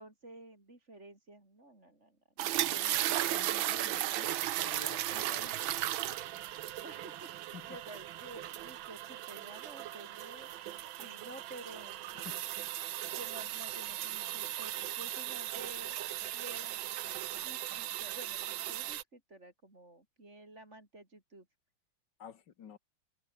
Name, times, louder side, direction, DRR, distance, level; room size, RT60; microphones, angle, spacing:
voice 1, 0.0-2.5 6.8-12.1 13.0-16.0 16.3-16.9 17.3-21.5, right 2 dB, 35° right, 5.0 m, -52 dB
sound 1, 2.4-19.0, right 13 dB, 85° right, 1.6 m, -37 dB
voice 2, 2.6-5.6 6.1-6.2 7.5-7.8 12.1-12.4 22.2-22.8, left 8 dB, 60° left, 2.1 m, -51 dB
omnidirectional pair, 2.2 m